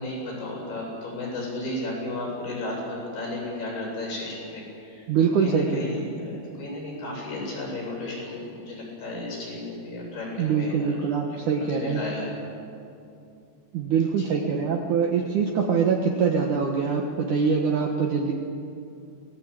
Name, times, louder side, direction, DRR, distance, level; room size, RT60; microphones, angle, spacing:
voice 1, 0.0-5.0 5.4-10.9 11.5-12.3 14.2-14.3, left 2 dB, 75° left, -2 dB, 9.8 m, -34 dB
voice 2, 5.1-6.0 10.4-12.0 13.7-18.3, right 6 dB, 60° right, 1 dB, 2.5 m, -24 dB
24.5 x 19.0 x 8.9 m, 2.6 s
omnidirectional pair, 4.6 m